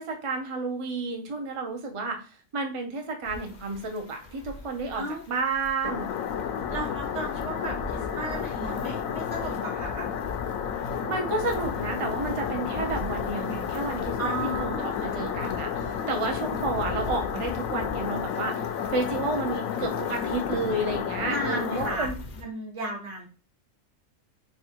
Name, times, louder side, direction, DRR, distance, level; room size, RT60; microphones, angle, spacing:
voice 1, 0.0-2.3 2.5-6.1 11.1-14.3 14.6-18.6 18.9-22.1, right 3 dB, 40° right, 3 dB, 0.4 m, -31 dB
sound 1, 3.2-22.4, left 3 dB, 55° left, 0.5 m, -42 dB
sound 2, 5.8-22.0, left 8 dB, 80° left, 1.0 m, -31 dB
voice 2, 6.7-10.1 14.2-15.6 21.2-23.3, right 1 dB, 65° right, 0 dB, 1.5 m, -34 dB
3.5 x 2.3 x 4.4 m, 0.35 s
omnidirectional pair, 1.4 m